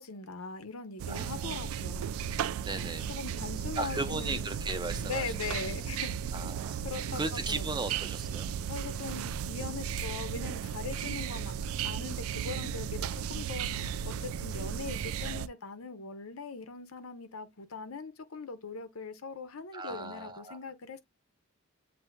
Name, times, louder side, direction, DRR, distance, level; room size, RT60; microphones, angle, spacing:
voice 1, 0.0-2.2 2.8-4.5 5.0-6.1 6.8-7.2 7.5-7.9 8.7-11.5 11.8-21.0, left 4 dB, 85° left, 0.8 m, -41 dB
sound 1, 1.0-15.5, right 8 dB, 80° right, 0.3 m, -35 dB
voice 2, 1.1-1.5 2.6-3.1 3.8-5.7 6.3-6.8 7.1-8.5 19.7-20.6, right 3 dB, 20° right, 0.5 m, -37 dB
7.7 x 2.8 x 2.2 m
head